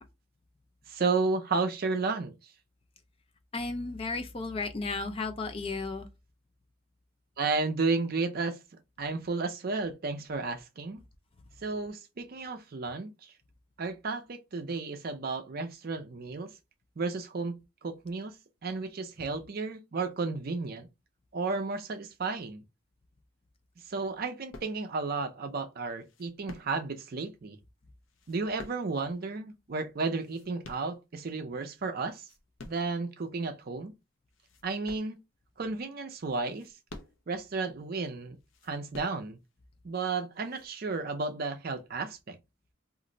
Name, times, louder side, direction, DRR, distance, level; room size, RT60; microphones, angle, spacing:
voice 1, 0.9-2.3 7.4-8.6 9.0-11.0 11.6-13.3 13.8-16.5 17.0-18.3 18.6-20.9 21.3-22.6 23.9-27.6 28.3-32.2 32.7-33.9 34.6-35.2 35.6-36.7 37.3-38.4 38.7-39.4 39.8-42.4, right 3 dB, 45° right, 0.5 m, -33 dB
voice 2, 3.5-6.1, left 3 dB, 30° left, 0.3 m, -34 dB
sound 1, 24.5-25.1 26.0-27.1 28.0-29.2 30.0-31.4 31.9-33.0 33.5-33.6 34.3-35.6 36.3-37.5 38.4-39.6 40.3-40.7, left 2 dB, 75° left, 0.6 m, -50 dB
2.5 x 2.0 x 3.8 m
head